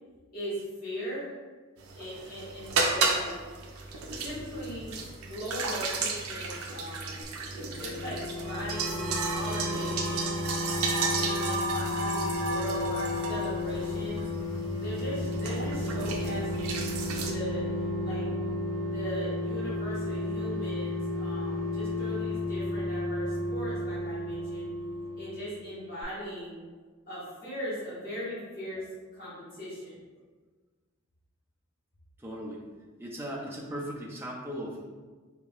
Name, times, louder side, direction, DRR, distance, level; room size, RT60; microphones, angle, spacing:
voice 1, 0.3-1.3 2.0-3.4 4.2-4.9 5.3-7.3 7.7-10.3 11.1-14.2 14.7-16.8 17.1-18.3 18.8-24.7 25.2-26.6 27.0-28.8 29.1-30.0, equal, 40° left, -9 dB, 1.3 m, -39 dB
sound 1, 1.8-17.3, right 3 dB, 80° right, 0.5 m, -33 dB
sound 2, 7.4-25.7 26.0-26.1, left 2 dB, 25° left, 1.4 m, -33 dB
voice 2, 32.2-32.6 33.0-34.8, equal, 10° right, -3 dB, 0.4 m, -37 dB
3.6 x 3.6 x 2.4 m, 1.4 s
head